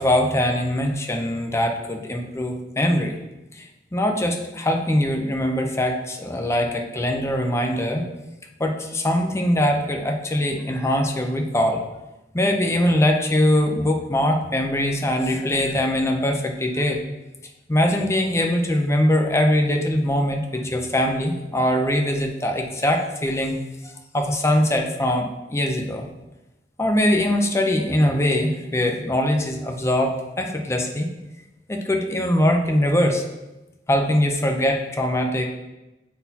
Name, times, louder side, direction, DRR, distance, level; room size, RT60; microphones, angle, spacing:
voice 1, 0.0-3.1 3.6-8.0 8.6-11.8 12.3-17.0 17.7-23.5 23.8-26.0 26.8-31.1 31.7-33.2 33.9-35.5, left 1 dB, 15° left, 3 dB, 0.6 m, -22 dB
9.5 x 4.1 x 2.8 m, 1.0 s
head